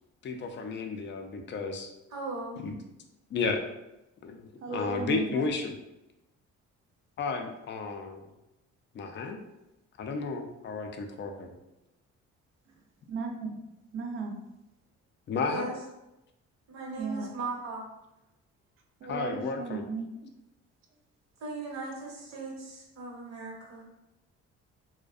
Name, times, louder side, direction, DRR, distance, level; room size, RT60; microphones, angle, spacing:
voice 1, 0.2-1.9 2.6-2.8 3.3-3.6 4.2-5.7 7.2-8.3 8.9-9.4 10.0-11.5 15.3-15.7 19.0-19.8, left 4 dB, 40° left, 5 dB, 0.4 m, -33 dB
voice 2, 2.1-2.6 15.5-15.7 16.7-17.9 21.4-23.8, right 3 dB, 60° right, -2 dB, 0.8 m, -38 dB
voice 3, 4.6-5.5 13.1-13.6 13.9-14.4 17.0-17.4 19.0-20.3, right 4 dB, 45° right, 2 dB, 0.4 m, -35 dB
2.5 x 2.1 x 2.3 m, 0.94 s
cardioid pair, 90°, 30 cm